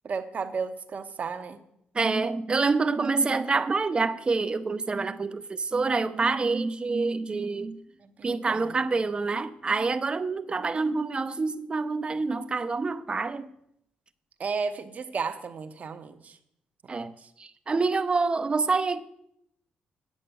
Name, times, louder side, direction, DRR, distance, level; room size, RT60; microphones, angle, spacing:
voice 1, 0.0-1.6 8.0-8.9 14.4-16.4 16.8-17.3, right 5 dB, 50° right, 1.0 m, -34 dB
voice 2, 1.9-7.8 8.2-13.5 16.9-17.1 17.4-19.0, right 4 dB, 30° right, 0.7 m, -27 dB
8.6 x 8.2 x 6.8 m
cardioid pair, 95°, 3 cm